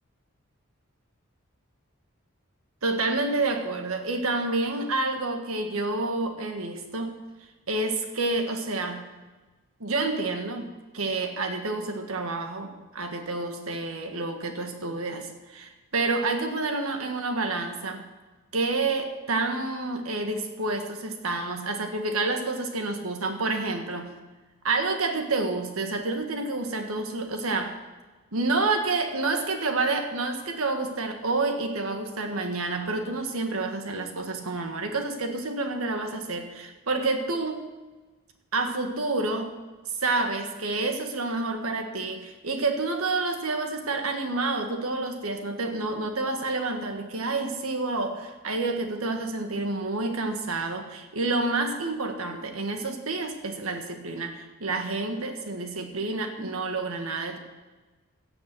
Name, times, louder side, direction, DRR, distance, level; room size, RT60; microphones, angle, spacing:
voice 1, 2.8-7.2 7.7-9.0 9.8-18.0 18.5-24.2 24.6-27.8 28.3-37.7 38.5-39.6 40.0-57.4, right 3 dB, 85° right, 5 dB, 1.7 m, -29 dB
16.0 x 7.1 x 6.8 m, 1.2 s
head